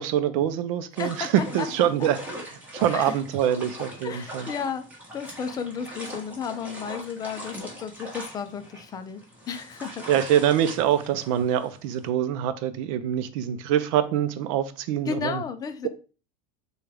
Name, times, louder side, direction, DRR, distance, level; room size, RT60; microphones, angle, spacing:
voice 1, 0.0-2.2 2.7-4.5 10.1-15.4, right 10 dB, 65° right, 0.6 m, -24 dB
voice 2, 1.0-2.1 2.9-3.2 4.0-10.0 15.1-15.9, left 6 dB, 20° left, 0.4 m, -33 dB
sound 1, 1.0-12.1, equal, 10° right, 1.3 m, -41 dB
6.7 x 2.3 x 3.4 m
supercardioid pair, 145°, 18 cm